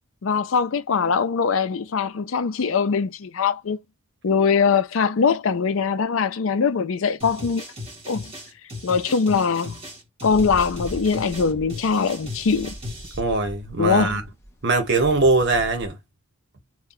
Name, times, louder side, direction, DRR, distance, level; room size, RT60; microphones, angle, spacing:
voice 1, 0.2-3.8 4.2-7.6 8.1-8.3 8.8-9.8 10.2-12.8 13.8-14.2, left 5 dB, 65° left, 0.5 m, -22 dB
sound 1, 7.2-13.2, left 2 dB, 25° right, 1.5 m, -37 dB
sound 2, 10.3-15.9, equal, 15° left, 0.7 m, -40 dB
voice 2, 13.2-14.2 14.6-16.0, right 3 dB, 55° right, 1.0 m, -21 dB
2.8 x 2.3 x 3.7 m
head